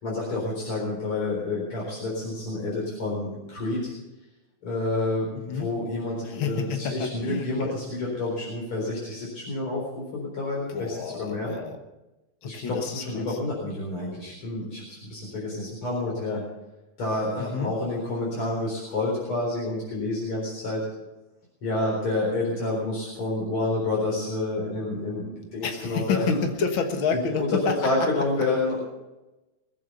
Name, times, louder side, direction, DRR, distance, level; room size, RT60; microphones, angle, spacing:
voice 1, 0.0-3.9 4.6-11.5 12.4-16.4 17.0-20.9 21.6-26.4 27.4-27.5 27.8-28.8, left 2 dB, 85° left, -4 dB, 5.0 m, -29 dB
voice 2, 5.4-5.7 6.2-7.8 10.7-11.8 12.4-13.4 17.4-17.7 25.6-26.2 26.6-27.7, left 5 dB, 70° left, 5 dB, 2.1 m, -30 dB
21.0 x 8.5 x 6.9 m, 1.0 s
omnidirectional pair, 2.3 m